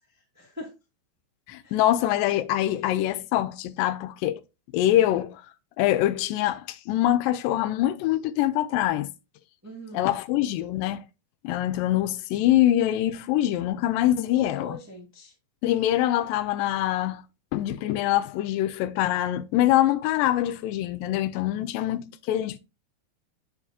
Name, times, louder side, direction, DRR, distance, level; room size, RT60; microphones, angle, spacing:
voice 1, 0.3-0.7 1.6-1.8 9.6-10.1 14.3-15.3, equal, 10° right, 0.7 m, -42 dB
voice 2, 1.5-4.4 4.7-5.4 5.8-9.1 9.9-11.0 11.4-14.8 15.6-17.2 17.5-22.6, left 13 dB, 85° left, 2.2 m, -24 dB
7.3 x 6.1 x 2.6 m
omnidirectional pair, 4.0 m